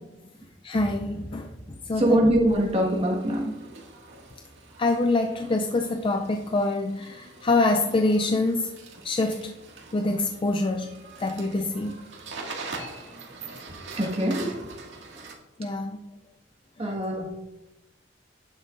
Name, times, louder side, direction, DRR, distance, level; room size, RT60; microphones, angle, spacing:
voice 1, 0.6-2.2 4.8-8.7 9.0-9.6 9.9-12.1 15.6-16.0 16.8-16.9, left 2 dB, 30° left, 0.4 m, -26 dB
sound 1, 0.7-3.9, equal, ahead, 2.0 m, -45 dB
voice 2, 1.9-3.5 14.0-14.5 16.8-17.3, equal, 35° right, 1.6 m, -23 dB
sound 2, 2.5-15.3, right 3 dB, 85° right, 2.0 m, -43 dB
12.0 x 9.9 x 2.5 m
head